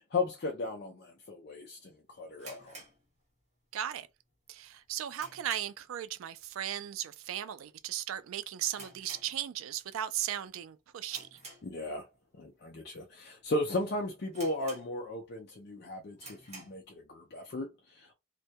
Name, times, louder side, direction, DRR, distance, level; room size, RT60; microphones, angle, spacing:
voice 1, 0.1-2.8 11.6-12.1 12.4-18.1, left 2 dB, 50° left, 0.4 m, -36 dB
sound 1, 2.4-3.7 4.0-4.1 4.6-6.0 6.3-6.6 6.8-6.9 7.6-7.9 8.2-8.3 8.7-9.9 10.2-10.5 11.0-12.2 12.7-12.8 13.4-13.5 13.8-13.9 14.3-15.3 15.7-15.8 16.1-16.9, right 2 dB, 30° right, 0.9 m, -50 dB
voice 2, 3.7-4.1 4.5-11.4, right 11 dB, 90° right, 0.3 m, -37 dB
2.2 x 2.1 x 2.7 m
head